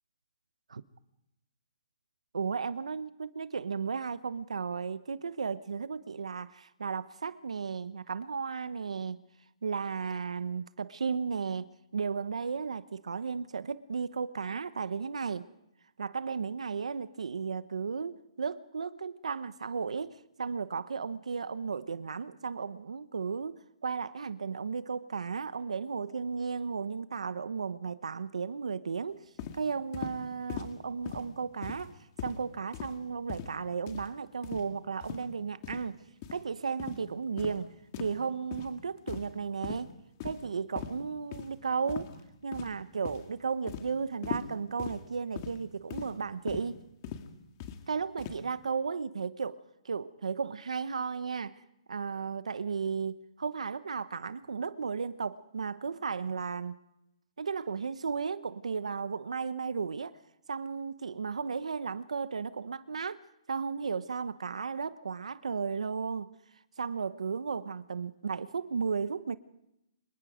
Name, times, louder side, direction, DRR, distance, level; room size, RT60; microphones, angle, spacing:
voice 1, 2.3-9.2 9.6-15.4 16.0-29.2 29.5-36.0 36.3-37.7 38.0-39.9 40.2-42.1 42.4-46.8 47.9-51.6 51.9-56.7 57.4-60.2 60.5-63.2 63.5-66.3 66.8-69.4, right 5 dB, 90° right, 14 dB, 1.0 m, -34 dB
sound 1, 29.4-29.6 29.9-30.2 30.5-30.7 31.1-31.3 31.6-31.9 32.2-32.4 32.7-33.0 33.3-33.5 33.9-34.1 34.4-34.7 35.0-35.2 35.6-35.8 36.2-36.4 36.8-37.0 37.4-37.6 37.9-38.2 38.5-38.7 39.1-39.4 39.6-39.8 40.2-40.5 40.8-41.0 41.3-41.5 41.9-42.2 42.5-42.8 43.1-43.3 43.7-43.9 44.2-44.5 44.8-45.0 45.4-45.6 45.9-46.1 46.5-46.7 47.0-47.2 47.6-47.8 48.2-48.4, left 9 dB, 30° left, 2.0 m, -39 dB
26.0 x 22.5 x 5.1 m, 0.85 s
hypercardioid pair, 165°, 3 cm